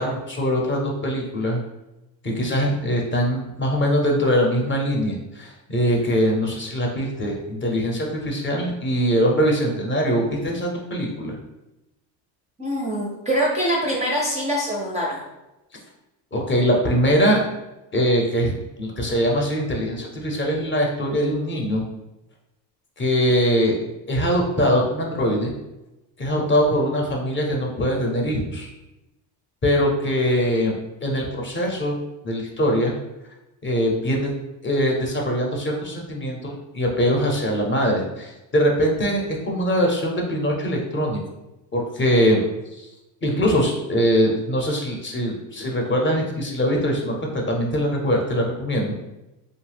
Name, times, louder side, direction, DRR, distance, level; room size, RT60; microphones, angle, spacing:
voice 1, 0.0-1.6 2.2-11.4 16.3-17.4 17.9-18.5 18.8-21.8 23.0-23.8 24.1-25.5 26.2-28.7 29.6-30.8 31.0-32.0 32.2-33.0 33.6-34.3 34.6-41.2 41.7-42.4 42.7-42.9 43.2-49.0, equal, 25° left, 0 dB, 0.6 m, -22 dB
voice 2, 12.6-15.2, equal, 15° right, -3 dB, 0.4 m, -24 dB
2.7 x 2.1 x 3.3 m, 0.97 s
supercardioid pair, 100°, 46 cm